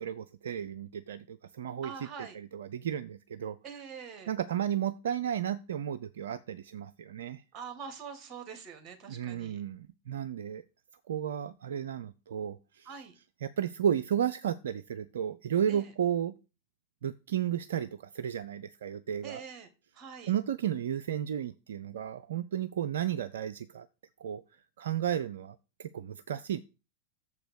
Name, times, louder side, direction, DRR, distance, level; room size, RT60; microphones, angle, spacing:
voice 1, 0.0-3.6 4.3-7.4 9.1-10.6 11.1-12.9 13.4-16.3 17.0-19.4 20.2-23.9 24.2-24.4 24.8-26.6, right 9 dB, 60° right, 12 dB, 0.4 m, -33 dB
voice 2, 1.8-2.4 3.6-4.3 7.5-9.6 12.9-13.2 15.7-15.9 19.2-19.7 19.9-20.3, right 6 dB, 30° right, 7 dB, 1.9 m, -44 dB
6.9 x 4.9 x 6.4 m, 0.31 s
figure-of-eight pair, 90°, 0 cm